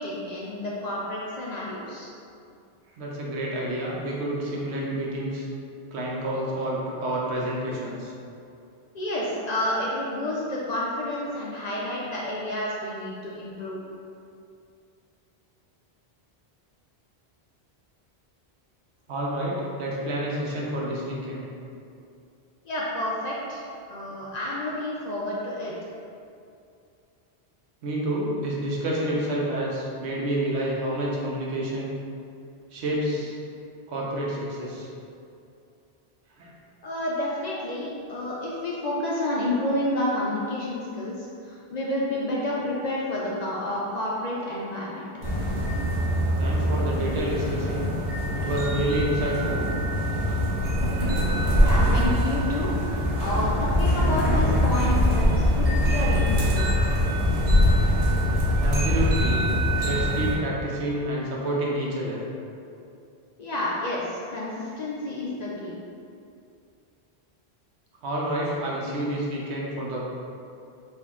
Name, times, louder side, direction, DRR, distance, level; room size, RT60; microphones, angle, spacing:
voice 1, 0.0-2.1 8.9-13.8 22.6-25.7 36.8-45.1 51.6-52.7 53.2-56.7 57.0-57.1 63.4-65.8, left 1 dB, 55° left, -6 dB, 0.5 m, -30 dB
voice 2, 3.0-5.5 5.9-8.1 19.1-21.5 27.8-31.9 32.7-33.3 33.9-34.9 36.4-36.5 46.4-47.9 48.3-49.7 58.6-59.4 59.8-62.2 68.0-70.0, right 1 dB, 90° right, -4 dB, 1.0 m, -29 dB
sound 1, 45.2-60.3, equal, 40° right, 0.6 m, -23 dB
4.3 x 2.6 x 2.3 m, 2.5 s
omnidirectional pair, 1.1 m